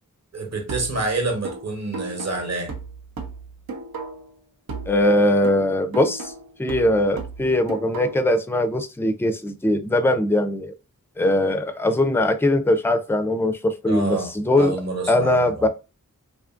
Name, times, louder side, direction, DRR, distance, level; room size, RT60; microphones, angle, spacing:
voice 1, 0.3-2.7 13.9-15.7, right 2 dB, 50° right, 1.0 m, -28 dB
sound 1, 0.7-4.4 4.7-8.4, right 4 dB, 85° right, 0.6 m, -36 dB
voice 2, 4.9-6.3 6.6-10.7 11.2-14.7 15.1-15.7, left 1 dB, 5° left, 0.4 m, -21 dB
2.7 x 2.5 x 2.4 m
cardioid pair, 40°, 34 cm